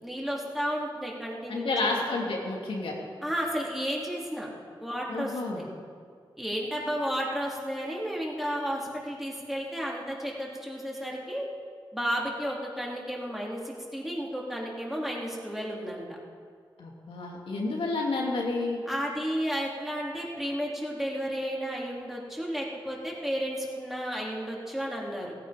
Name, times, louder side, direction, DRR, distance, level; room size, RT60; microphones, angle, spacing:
voice 1, 0.0-2.0 3.2-4.5 4.8-5.7 6.4-11.4 11.9-16.2 18.9-25.4, equal, 5° right, -3 dB, 3.5 m, -32 dB
voice 2, 1.5-2.9 5.1-5.6 16.8-18.8, left 3 dB, 85° left, -2 dB, 2.7 m, -30 dB
16.0 x 15.5 x 5.2 m, 2.1 s
cardioid pair, 75°, 9 cm